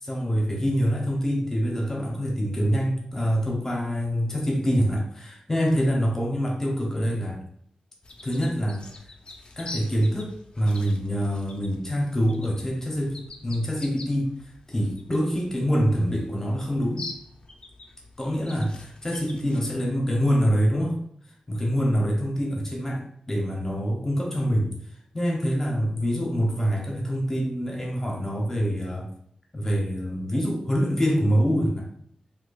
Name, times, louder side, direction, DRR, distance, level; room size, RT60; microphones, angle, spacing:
voice 1, 0.0-7.4 8.2-8.9 9.6-14.3 14.7-17.0 18.2-21.0 21.5-24.7 25.1-29.1 29.5-31.8, equal, 20° left, -1 dB, 0.9 m, -25 dB
sound 1, 8.0-19.7, left 3 dB, 40° left, 0.4 m, -45 dB
4.2 x 2.8 x 2.4 m, 0.68 s
wide cardioid pair, 145°, 2 cm